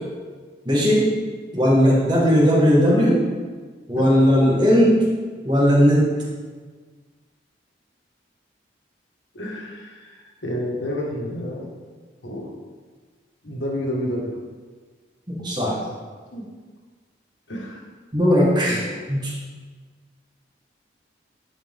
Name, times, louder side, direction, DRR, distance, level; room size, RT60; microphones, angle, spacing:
voice 1, 0.6-1.1 1.5-3.2 3.9-5.0 5.4-6.1 15.3-15.8 18.1-18.8 19.1-19.3, equal, 25° right, -5 dB, 1.7 m, -17 dB
voice 2, 2.1-2.5 4.0-4.1 9.3-10.1 10.4-11.7 12.2-12.5 13.4-14.3 16.3-16.4 17.5-17.8 18.7-19.0, equal, 85° left, -2 dB, 1.7 m, -30 dB
11.0 x 5.0 x 3.7 m, 1.5 s
head